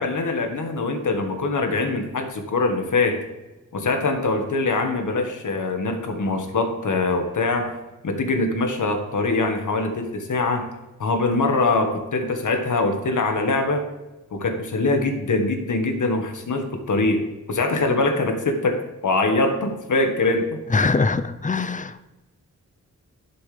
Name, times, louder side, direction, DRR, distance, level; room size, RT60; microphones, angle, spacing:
voice 1, 0.0-3.2 3.7-7.7 8.0-10.7 11.0-13.8 14.3-20.6, left 3 dB, 75° left, 5 dB, 1.6 m, -23 dB
voice 2, 20.7-22.1, left 4 dB, 25° left, 13 dB, 0.6 m, -22 dB
11.5 x 10.5 x 3.4 m, 1.1 s
cardioid pair, 75°, 31 cm